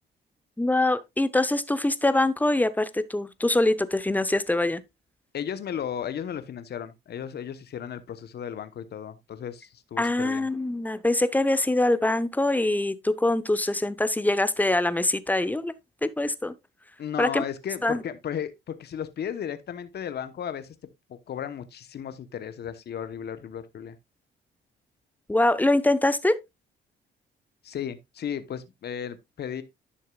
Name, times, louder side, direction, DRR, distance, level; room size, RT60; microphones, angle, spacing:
voice 1, 0.6-4.8 10.0-15.7 16.0-16.5 17.2-17.4 17.8-18.0 25.3-26.4, left 2 dB, 10° left, 0.8 m, -24 dB
voice 2, 5.3-10.5 17.0-20.7 21.3-24.0 27.6-29.6, left 8 dB, 55° left, 1.0 m, -35 dB
11.0 x 6.5 x 2.3 m
cardioid pair, 90°, 20 cm